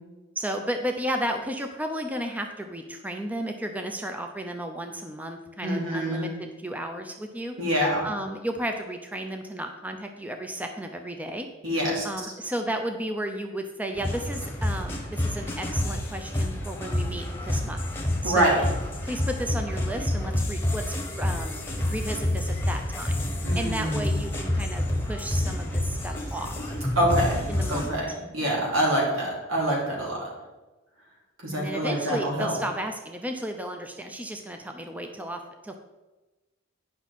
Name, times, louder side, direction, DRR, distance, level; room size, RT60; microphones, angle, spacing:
voice 1, 0.4-7.5 8.0-11.5 12.0-17.8 18.2-18.6 19.0-21.6 21.9-23.2 23.5-26.6 27.5-28.2 31.5-35.8, right 1 dB, 10° right, 4 dB, 0.5 m, -33 dB
voice 2, 5.6-6.4 7.6-8.1 11.6-12.1 18.2-18.6 23.4-24.2 27.0-30.2 31.4-32.5, right 1 dB, 85° right, -4 dB, 3.0 m, -26 dB
sound 1, 14.0-27.9, left 1 dB, 10° left, 1.1 m, -28 dB
9.8 x 6.0 x 4.2 m, 1.1 s
head